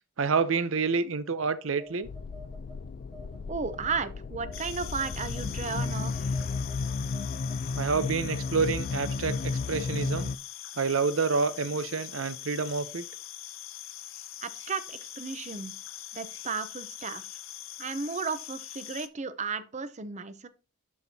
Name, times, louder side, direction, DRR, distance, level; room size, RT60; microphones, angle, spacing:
voice 1, 0.2-2.1 7.8-10.3 10.8-13.0, right 5 dB, 80° right, 0.7 m, -28 dB
Telephone, 1.8-4.1 4.5-7.6, equal, 5° right, 1.1 m, -49 dB
sound 1, 2.0-10.4, left 4 dB, 45° left, 0.3 m, -33 dB
voice 2, 3.5-6.4 14.4-15.7 16.1-17.2 17.8-20.5, right 5 dB, 35° right, 0.6 m, -34 dB
sound 2, 4.5-19.1, left 12 dB, 90° left, 0.7 m, -43 dB
12.0 x 4.5 x 2.8 m
head